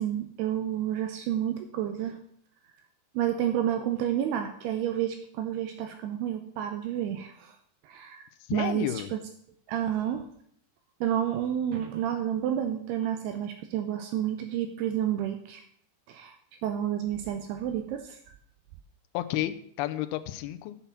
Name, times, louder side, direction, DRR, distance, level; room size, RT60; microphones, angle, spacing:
voice 1, 0.0-2.2 3.2-7.5 7.8-8.2 8.5-9.2 9.7-10.2 11.0-15.6 16.1-16.4 16.6-18.2, right 10 dB, 80° right, 7 dB, 2.4 m, -30 dB
voice 2, 8.5-9.1 19.1-20.8, left 14 dB, 85° left, 9 dB, 2.2 m, -31 dB
8.7 x 7.0 x 5.7 m, 0.64 s
omnidirectional pair, 5.1 m